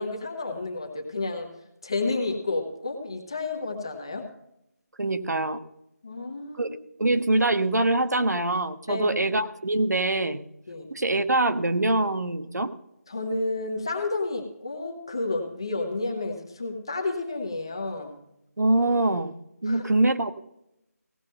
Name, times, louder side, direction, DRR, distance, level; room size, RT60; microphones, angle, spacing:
voice 1, 0.0-1.5 1.8-4.3 6.0-6.8 8.9-9.1 10.7-10.9 13.1-18.2 19.7-19.8, left 3 dB, 15° left, 3 dB, 1.0 m, -31 dB
voice 2, 5.0-5.6 6.6-6.7 7.0-10.4 10.9-12.7 18.6-19.4 19.6-20.3, right 2 dB, 85° right, 10 dB, 1.2 m, -24 dB
17.0 x 5.9 x 5.4 m, 0.83 s
figure-of-eight pair, 180°, 9 cm